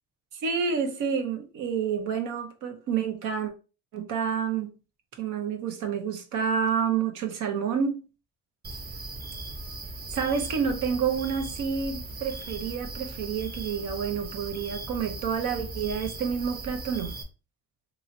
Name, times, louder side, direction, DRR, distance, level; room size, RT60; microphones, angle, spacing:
voice 1, 0.4-3.5 3.9-4.7 5.2-8.0 10.1-17.1, right 6 dB, 90° right, 0.8 m, -29 dB
sound 1, 8.6-17.2, right 2 dB, 30° right, 0.7 m, -38 dB
3.0 x 2.9 x 2.6 m
cardioid pair, 90°, 30 cm